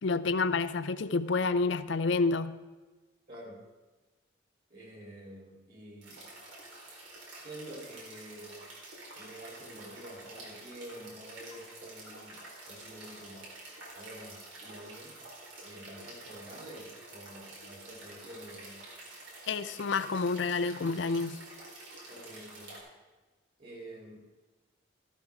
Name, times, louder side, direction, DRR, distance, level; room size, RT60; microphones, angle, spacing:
voice 1, 0.0-2.6 19.5-21.4, left 4 dB, 70° left, 13 dB, 0.5 m, -29 dB
voice 2, 3.3-3.6 4.7-6.3 7.3-8.7 9.1-13.5 13.9-15.2 15.6-18.8 22.1-22.8 23.6-24.2, right 1 dB, 50° right, -2 dB, 3.4 m, -48 dB
sound 1, 6.0-22.8, right 2 dB, 85° right, 4.1 m, -49 dB
14.5 x 12.5 x 3.6 m, 1.2 s
head